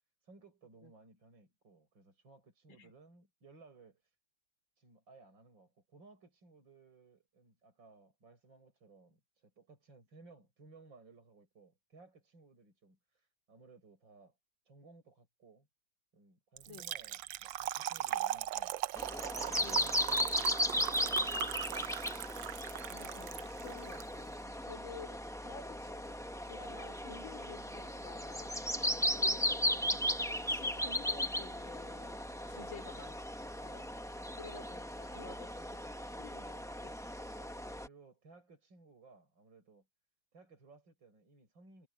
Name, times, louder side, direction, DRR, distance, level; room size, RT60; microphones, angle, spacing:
voice 1, 0.2-4.1 4.8-14.4 14.7-15.7 16.1-18.7 19.3-22.1 25.5-25.8 28.7-29.2 32.5-32.9 35.1-35.6 37.4-39.9 40.3-41.9, right 3 dB, 55° right, 7.7 m, -60 dB
Trickle dribble / Fill (with liquid), 16.6-24.0, right 14 dB, 75° right, 1.2 m, -39 dB
sound 1, 18.9-37.9, left 1 dB, 5° left, 0.3 m, -36 dB
voice 2, 19.6-20.0 22.9-26.1 26.5-28.6 29.1-29.4 29.9-33.2 33.6-33.9 34.3-35.8 36.2-37.0, left 5 dB, 65° left, 4.2 m, -51 dB
sound 2, 27.2-33.1, right 1 dB, 20° right, 4.9 m, -64 dB
omnidirectional pair, 2.4 m